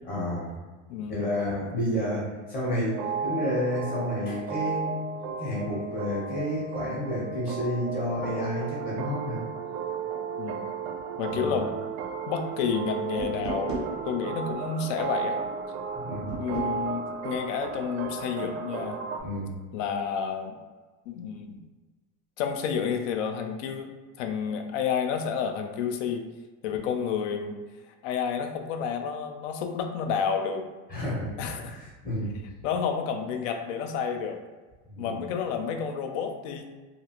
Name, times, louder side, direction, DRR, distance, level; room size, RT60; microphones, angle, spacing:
voice 1, 0.1-0.5 1.1-5.0 5.4-9.4 11.3-11.5 15.9-16.4 19.2-19.5 30.9-31.3 31.7-32.3 34.9-35.2, left 1 dB, 25° left, -6 dB, 0.7 m, -30 dB
voice 2, 0.9-1.3 10.4-10.7 11.2-11.7 12.3-15.4 16.4-19.0 19.7-20.6 21.1-21.6 22.4-23.9 24.2-26.3 26.6-27.6 28.0-30.6 31.4-31.8 32.6-34.4 35.0-36.7, left 7 dB, 85° left, 5 dB, 0.5 m, -30 dB
sound 1, 2.9-19.2, right 6 dB, 75° right, 0.5 m, -34 dB
sound 2, 13.2-13.9 16.3-16.8, right 2 dB, 20° right, 0.3 m, -34 dB
2.9 x 2.4 x 2.8 m, 1.3 s
cardioid pair, 175°, 36 cm